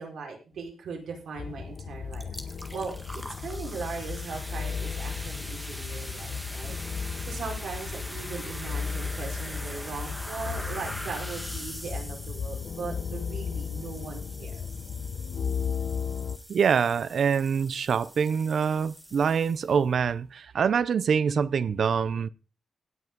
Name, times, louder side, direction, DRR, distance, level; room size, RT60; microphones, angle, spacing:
voice 1, 0.0-2.3 2.7-6.7 7.2-14.7, right 4 dB, 75° right, 4.6 m, -39 dB
sound 1, 1.4-16.4, left 6 dB, 50° left, 0.9 m, -35 dB
sound 2, 1.7-1.8 2.1-19.9, equal, ahead, 1.6 m, -42 dB
voice 2, 16.5-22.3, right 6 dB, 55° right, 0.6 m, -25 dB
17.0 x 6.1 x 5.3 m
wide cardioid pair, 170°, 0 cm